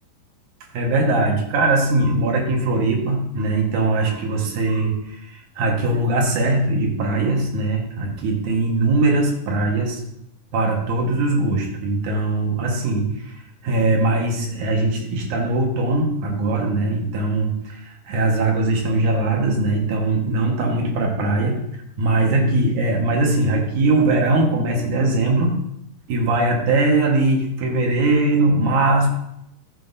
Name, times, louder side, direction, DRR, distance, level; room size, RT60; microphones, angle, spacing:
voice 1, 0.7-10.0 10.5-21.6 22.0-25.6 26.1-29.1, right 2 dB, 60° right, 0 dB, 2.4 m, -20 dB
13.5 x 8.1 x 2.7 m, 0.79 s
omnidirectional pair, 4.9 m